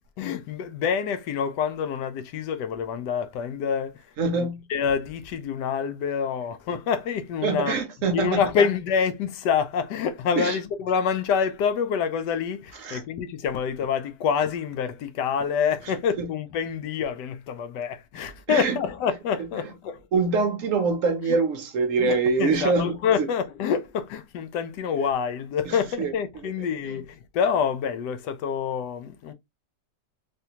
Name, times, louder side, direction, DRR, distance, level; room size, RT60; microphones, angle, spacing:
voice 1, 0.2-7.8 8.1-20.1 21.3-21.4 22.0-29.3, left 7 dB, 80° left, 1.2 m, -27 dB
voice 2, 4.2-4.7 7.4-8.4 10.4-10.6 12.8-13.0 16.2-16.3 18.5-18.8 20.1-23.3 25.6-26.1, right 4 dB, 65° right, 0.8 m, -24 dB
3.5 x 2.6 x 2.7 m
omnidirectional pair, 1.8 m